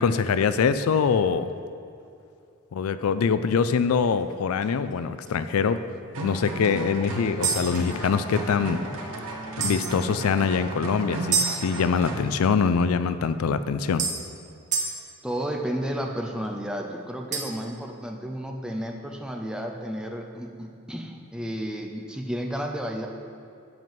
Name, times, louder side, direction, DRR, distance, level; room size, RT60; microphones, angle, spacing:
voice 1, 0.0-1.5 2.7-5.8 6.2-8.8 9.6-14.1, left 6 dB, 80° left, 12 dB, 0.4 m, -24 dB
sound 1, 3.5-3.7 4.2-4.3 4.6-4.8 5.3-5.4 7.4-8.7 9.6-10.0 11.3-11.5 13.3-13.4 14.0-14.2 14.7-14.9 17.3-17.7, right 5 dB, 35° right, 1.1 m, -28 dB
sound 2, 6.1-12.2, right 1 dB, 75° right, 1.4 m, -34 dB
voice 2, 15.2-23.1, equal, 5° right, 2 dB, 0.6 m, -32 dB
7.9 x 5.4 x 7.6 m, 2.5 s
head